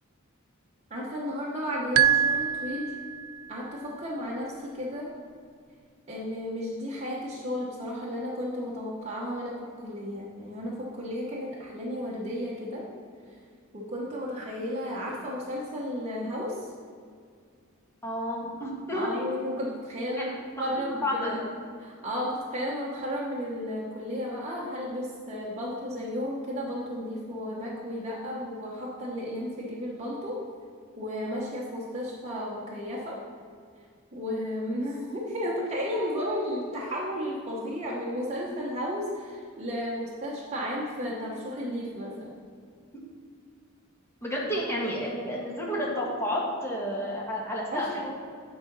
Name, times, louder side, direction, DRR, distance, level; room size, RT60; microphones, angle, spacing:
voice 1, 0.9-2.9 3.5-5.2 6.1-12.8 13.3-13.4 13.7-16.7 18.9-21.4 21.8-30.4 31.0-33.2 34.1-42.3 47.7-47.9, equal, 30° right, -5 dB, 1.0 m, -33 dB
sound 1, 2.0-3.5, right 9 dB, 85° right, 0.3 m, -25 dB
voice 2, 18.0-19.1 20.6-20.7 21.0-21.5 44.2-48.1, equal, 15° left, -4 dB, 1.5 m, -31 dB
9.1 x 3.9 x 5.3 m, 2.2 s
head